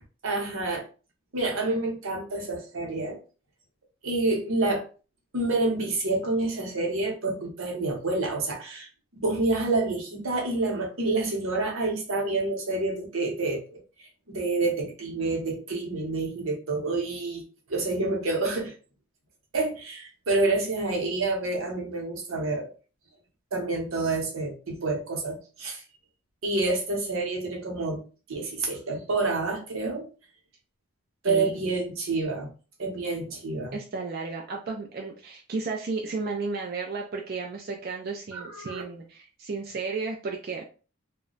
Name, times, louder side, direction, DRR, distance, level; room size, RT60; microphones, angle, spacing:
voice 1, 0.2-0.8 1.3-3.2 4.0-4.8 5.3-13.8 14.3-17.4 17.7-18.7 19.5-22.7 23.5-25.8 26.4-28.0 28.3-30.1 31.2-32.5 32.8-33.8 38.3-38.8, right 2 dB, 80° right, 1 dB, 0.9 m, -28 dB
voice 2, 31.2-31.7 33.7-40.7, right 4 dB, 45° right, 1 dB, 0.4 m, -33 dB
2.2 x 2.1 x 3.8 m, 0.35 s
head